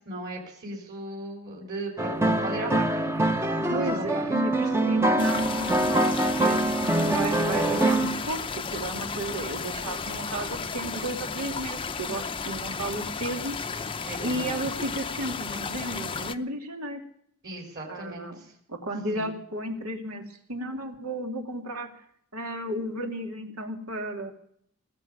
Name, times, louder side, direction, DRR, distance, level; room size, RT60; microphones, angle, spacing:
voice 1, 0.0-4.3 14.1-14.7 17.4-18.5 19.1-19.3, right 1 dB, 45° right, -2 dB, 3.9 m, -37 dB
sound 1, 2.0-8.2, right 1 dB, 10° right, 0.8 m, -24 dB
voice 2, 3.7-8.4 8.7-13.6 14.2-17.0 17.9-18.4 18.7-21.9 22.3-24.3, right 1 dB, 80° right, 4 dB, 2.7 m, -33 dB
sound 2, 5.2-16.3, left 5 dB, 25° left, 0.7 m, -33 dB
19.0 x 7.4 x 9.6 m, 0.66 s
head